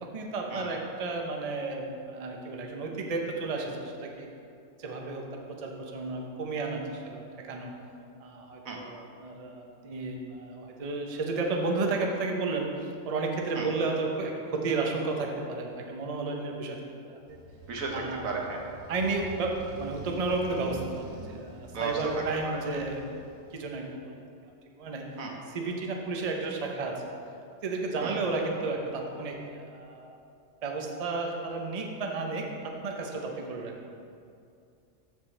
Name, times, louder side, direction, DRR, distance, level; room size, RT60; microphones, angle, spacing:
voice 1, 0.0-4.3 4.8-7.7 8.2-17.4 17.9-18.3 18.9-23.2 23.5-25.0 25.5-27.0 27.6-30.2 30.6-34.0, right 3 dB, 35° right, 1 dB, 0.7 m, -33 dB
Motorcycle, 17.2-23.9, equal, 60° right, 2.0 m, -46 dB
voice 2, 17.7-18.6 21.7-22.2 25.2-25.3 28.0-28.2, right 4 dB, 80° right, 0 dB, 1.5 m, -34 dB
13.0 x 5.3 x 3.3 m, 2.4 s
omnidirectional pair, 1.4 m